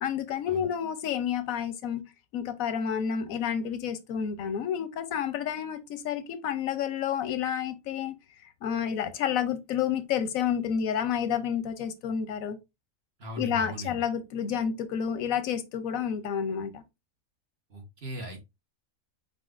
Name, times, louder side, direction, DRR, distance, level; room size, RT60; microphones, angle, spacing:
voice 1, 0.0-2.0 2.3-8.2 8.6-12.6 13.4-16.8, left 8 dB, 90° left, 1.1 m, -30 dB
voice 2, 13.2-13.9 17.7-18.4, equal, 50° right, 1.6 m, -39 dB
4.7 x 4.0 x 2.4 m
omnidirectional pair, 1.4 m